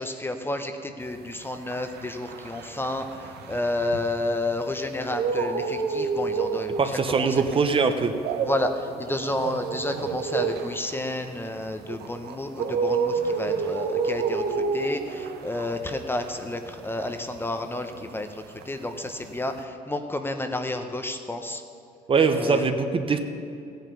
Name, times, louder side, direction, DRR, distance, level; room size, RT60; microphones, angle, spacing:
voice 1, 0.0-7.4 8.4-21.6 22.3-22.7, left 2 dB, 15° left, 6 dB, 0.7 m, -31 dB
sound 1, 1.3-4.5 4.9-18.3 18.6-19.6, right 5 dB, 75° right, 1.0 m, -30 dB
voice 2, 6.8-8.1 22.1-23.2, right 5 dB, 30° right, 7 dB, 0.9 m, -22 dB
14.5 x 9.2 x 5.5 m, 2.6 s
cardioid pair, 110°, 17 cm